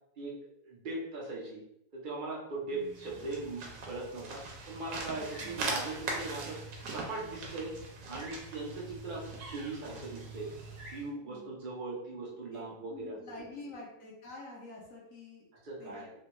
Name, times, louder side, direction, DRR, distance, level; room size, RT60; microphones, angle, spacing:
voice 1, 0.6-1.6 1.9-4.4 4.7-7.7 8.1-10.5 10.9-13.2 15.6-16.1, right 3 dB, 45° right, -4 dB, 0.6 m, -39 dB
voice 2, 2.6-3.3 5.1-5.6 11.2-11.5 12.5-12.6 12.9-15.4 15.8-16.1, left 2 dB, 60° left, -3 dB, 1.0 m, -48 dB
sound 1, 2.8-11.1, right 3 dB, 80° right, 1.3 m, -41 dB
3.3 x 2.3 x 2.9 m, 0.76 s
omnidirectional pair, 1.9 m